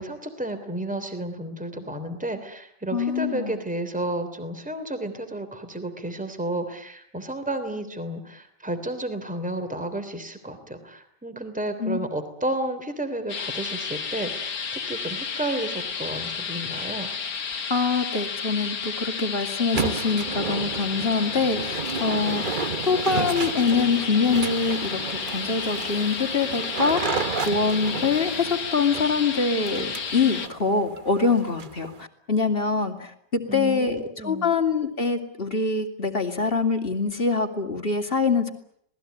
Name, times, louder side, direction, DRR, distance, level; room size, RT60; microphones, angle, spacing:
voice 1, 0.0-14.5 14.9-17.1 33.5-34.5, right 1 dB, 5° right, 9 dB, 3.1 m, -32 dB
voice 2, 2.9-3.6 11.8-12.0 17.7-22.6 22.9-27.2 27.5-38.5, left 4 dB, 30° left, 5 dB, 2.8 m, -24 dB
sound 1, 13.3-30.5, left 6 dB, 65° left, 2.2 m, -32 dB
sound 2, 19.7-32.0, right 5 dB, 35° right, 1.1 m, -32 dB
27.0 x 19.5 x 9.3 m, 0.70 s
omnidirectional pair, 1.9 m